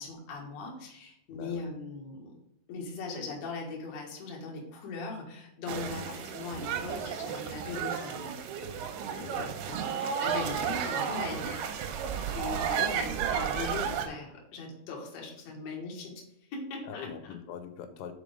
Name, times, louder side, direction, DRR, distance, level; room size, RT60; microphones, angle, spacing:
voice 1, 0.0-2.3 2.7-8.3 9.7-11.7 12.1-16.2 16.5-17.1, left 3 dB, 60° left, -1 dB, 1.9 m, -39 dB
voice 2, 1.3-1.7 5.9-6.1 9.2-9.6 12.8-12.9 16.9-18.1, left 8 dB, 90° left, 9 dB, 3.1 m, -42 dB
sound 1, 5.7-14.1, right 7 dB, 80° right, 2.4 m, -33 dB
5.9 x 5.0 x 5.1 m, 0.78 s
omnidirectional pair, 5.2 m